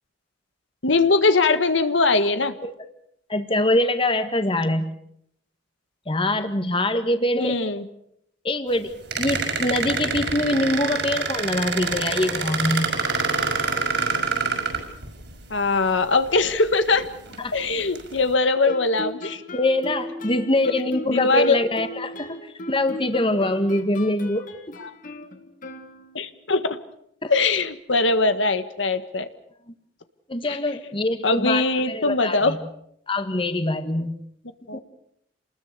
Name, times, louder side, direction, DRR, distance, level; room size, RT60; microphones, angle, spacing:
voice 1, 0.8-2.5 7.4-7.8 15.5-17.0 17.5-19.4 21.1-21.6 24.8-24.9 26.1-26.8 27.3-29.3 30.4-30.6 31.2-32.5 34.7-34.8, left 3 dB, 90° left, 10 dB, 1.6 m, -21 dB
voice 2, 3.3-4.9 6.1-7.6 8.4-13.0 17.4-17.5 18.6-18.7 19.5-22.4 22.7-24.8 27.2-27.3 30.3-32.6 33.1-34.2, left 1 dB, 30° left, 9 dB, 1.7 m, -24 dB
sound 1, 9.1-15.3 16.3-16.4 16.9-17.4 17.9-18.2, right 4 dB, 65° right, 6.0 m, -26 dB
Guitar, 18.7-26.4, left 1 dB, 45° left, 2.3 m, -38 dB
28.0 x 20.5 x 6.8 m, 0.74 s
head